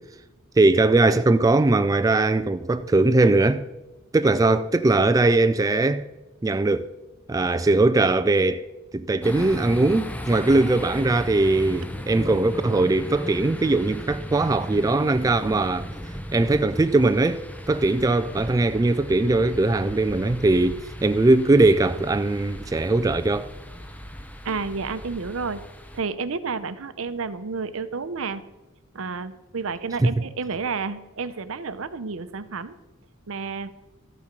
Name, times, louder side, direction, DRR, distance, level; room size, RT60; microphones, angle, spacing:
voice 1, 0.6-3.6 4.1-6.1 6.4-6.9 7.3-8.6 8.9-15.9 16.3-23.5 30.0-30.1, right 2 dB, 15° right, 0.3 m, -20 dB
sound 1, 9.2-26.0, equal, 5° left, 0.8 m, -36 dB
voice 2, 24.4-25.6 25.9-28.4 28.9-32.8 33.3-33.7, right 4 dB, 70° right, 0.7 m, -30 dB
13.0 x 8.5 x 5.2 m
head